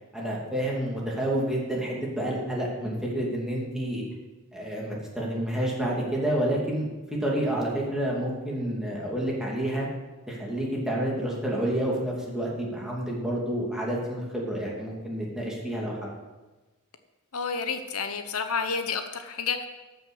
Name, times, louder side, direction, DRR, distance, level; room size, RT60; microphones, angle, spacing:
voice 1, 0.1-4.0 4.5-9.9 10.3-16.1, right 1 dB, 5° right, -4 dB, 2.6 m, -29 dB
voice 2, 17.3-19.7, left 5 dB, 90° left, 7 dB, 1.0 m, -30 dB
13.0 x 6.2 x 6.5 m, 1.2 s
head